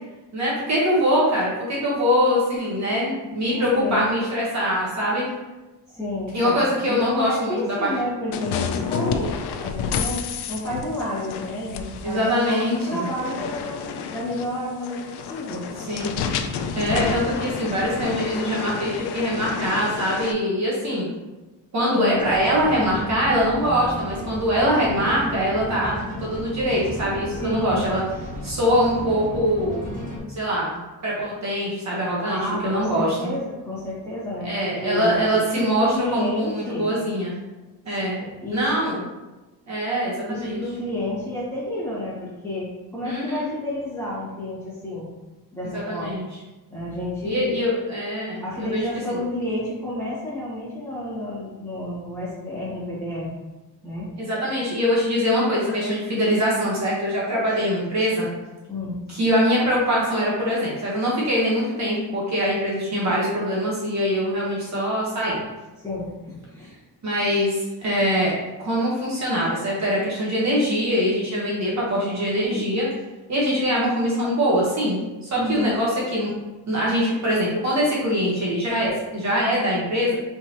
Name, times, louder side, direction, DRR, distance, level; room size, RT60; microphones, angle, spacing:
voice 1, 0.3-5.2 6.3-7.9 9.0-9.3 12.0-13.1 15.9-16.3 16.7-21.1 21.7-25.9 26.2-28.0 28.4-29.9 30.3-30.8 31.0-33.2 34.4-37.3 37.8-38.2 38.5-39.0 39.7-40.6 43.0-43.4 45.7-46.2 47.2-49.2 54.2-58.3 59.1-65.4 67.0-68.3 68.6-72.9 73.3-76.3 76.7-80.2, equal, 45° right, -6 dB, 1.2 m, -23 dB
voice 2, 3.5-4.1 5.9-9.3 9.6-15.7 15.9-16.1 21.9-22.3 27.3-27.8 32.2-34.5 34.8-36.9 37.9-38.8 40.3-45.0 45.5-46.1 46.7-47.6 48.4-53.3 53.8-54.1 58.7-59.0 65.8-66.8 75.3-75.8, left 1 dB, 5° left, -10 dB, 1.5 m, -30 dB
sound 1, 8.3-20.3, left 6 dB, 80° left, 0.5 m, -30 dB
sound 2, 22.2-30.2, equal, 20° right, 1.0 m, -34 dB
4.5 x 3.7 x 2.8 m, 1.1 s
wide cardioid pair, 180°, 39 cm